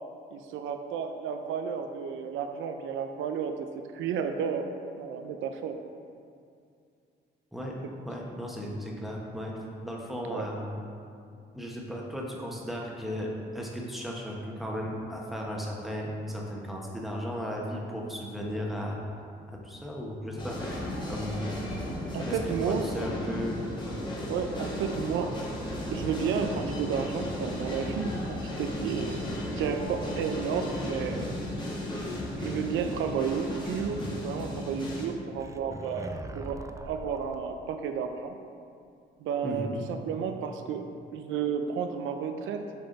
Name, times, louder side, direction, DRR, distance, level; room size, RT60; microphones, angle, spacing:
voice 1, 0.3-3.7 3.9-4.7 5.0-5.8 10.3-10.5 22.1-22.8 24.3-25.4 25.9-29.2 29.6-31.4 32.4-38.3 39.2-40.8 41.1-42.6, right 7 dB, 80° right, 6 dB, 0.4 m, -32 dB
voice 2, 8.0-9.5 9.8-10.7 11.5-19.0 19.5-21.4 22.3-23.5 23.8-24.0 39.4-39.7, equal, ahead, -2 dB, 1.1 m, -35 dB
sound 1, 20.4-35.1, left 1 dB, 20° left, 1.4 m, -35 dB
sound 2, 25.7-28.3 28.6-29.2 29.6-30.2 30.7-31.3 32.0-32.6 33.7-34.2 35.4-37.3, right 2 dB, 15° right, 0.3 m, -43 dB
7.8 x 3.5 x 3.9 m, 2.4 s
cardioid pair, 90°, 20 cm